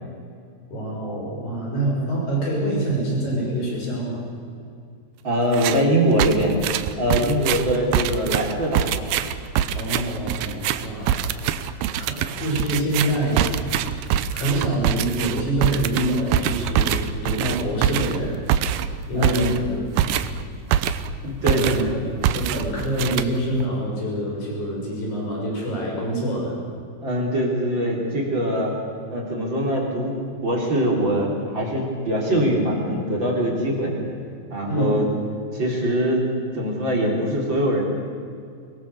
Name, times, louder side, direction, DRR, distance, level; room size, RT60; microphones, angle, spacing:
voice 1, 0.7-4.2 9.7-11.4 11.7-13.9 14.3-18.5 19.1-19.8 21.4-22.0 22.3-26.5 34.7-35.0, right 1 dB, 40° left, -2 dB, 7.5 m, -26 dB
voice 2, 5.2-6.6 7.0-9.0 19.1-19.6 21.2-21.7 27.0-28.7 29.1-30.2 30.4-33.9 34.5-35.1 35.5-36.3 36.5-37.8, equal, 30° right, -1 dB, 3.6 m, -22 dB
sound 1, 5.5-5.9 6.2-21.2 21.5-21.9 22.2-23.6, right 10 dB, 90° right, 2.1 m, -24 dB
23.0 x 21.0 x 6.9 m, 2.4 s
omnidirectional pair, 5.2 m